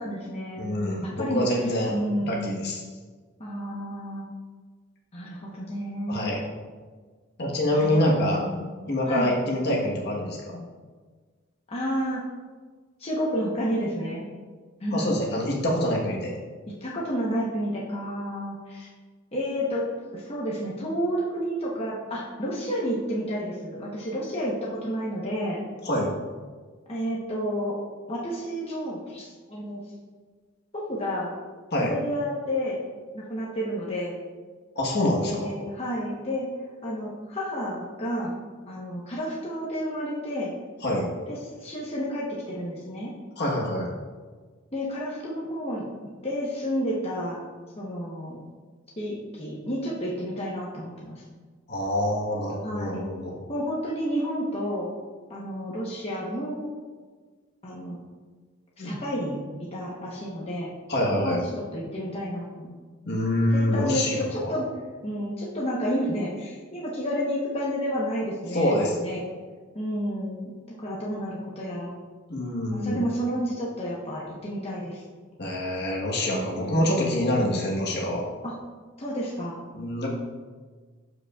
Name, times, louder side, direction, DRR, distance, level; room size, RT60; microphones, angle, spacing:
voice 1, 0.0-0.6 1.0-1.4 1.9-2.6 3.4-4.3 5.1-6.5 7.7-8.0 8.4-8.6 9.1-9.3 11.7-12.2 13.0-14.3 14.8-15.1 16.8-18.9 19.3-19.8 20.1-25.6 26.9-27.8 28.1-29.8 30.7-31.3 31.8-32.8 33.1-34.2 35.2-36.5 36.8-38.3 38.7-40.5 41.3-43.1 44.7-47.4 47.8-48.4 49.0-51.2 52.6-53.1 53.5-54.9 55.3-56.7 57.6-58.0 58.8-59.4 59.7-60.7 61.2-61.4 61.7-62.7 63.5-64.7 65.0-69.2 69.7-70.5 70.8-71.9 72.7-75.0 76.3-76.8 78.4-78.5 79.0-79.6, equal, 30° left, -5 dB, 1.1 m, -30 dB
voice 2, 0.6-1.9 2.2-2.8 6.1-6.4 7.4-8.4 8.9-10.6 14.9-16.3 25.8-26.1 31.7-31.9 34.7-35.5 40.8-41.1 43.4-43.9 51.7-53.4 58.8-59.0 60.9-61.4 63.0-64.5 68.5-69.0 72.3-73.0 75.4-78.3 79.7-80.1, left 1 dB, 55° left, -2 dB, 1.4 m, -26 dB
12.5 x 5.1 x 2.5 m, 1.5 s
head